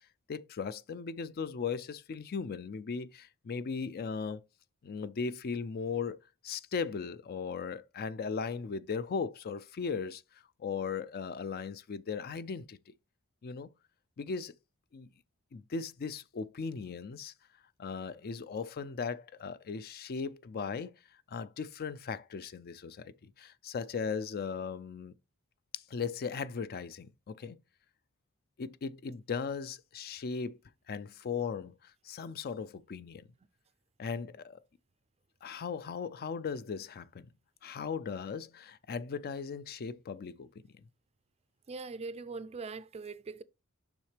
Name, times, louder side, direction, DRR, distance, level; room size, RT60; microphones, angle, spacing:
voice 1, 0.3-4.4 4.8-6.2 6.4-12.8 13.4-13.7 14.2-14.5 14.9-15.1 15.5-17.3 17.8-20.9 21.3-25.1 25.7-27.6 28.6-30.6 30.9-33.3 34.0-34.6 35.4-37.3 37.6-40.5, left 5 dB, 45° left, 0.4 m, -37 dB
voice 2, 41.7-43.4, right 4 dB, 30° right, 0.4 m, -41 dB
7.2 x 5.7 x 3.3 m
head